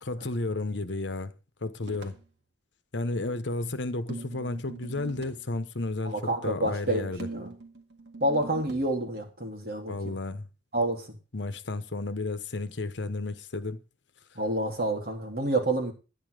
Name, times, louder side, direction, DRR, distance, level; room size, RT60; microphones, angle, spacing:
voice 1, 0.0-1.3 1.6-2.2 2.9-6.1 6.4-7.3 9.9-10.5 11.3-13.8, left 2 dB, 75° left, 1.0 m, -32 dB
sound 1, 1.8-2.3 4.1-5.5 7.2-8.9, right 3 dB, 70° right, 2.0 m, -42 dB
voice 2, 6.0-7.5 8.2-10.1 10.7-11.1 14.3-15.9, right 1 dB, 55° right, 3.3 m, -28 dB
11.5 x 9.9 x 5.0 m
head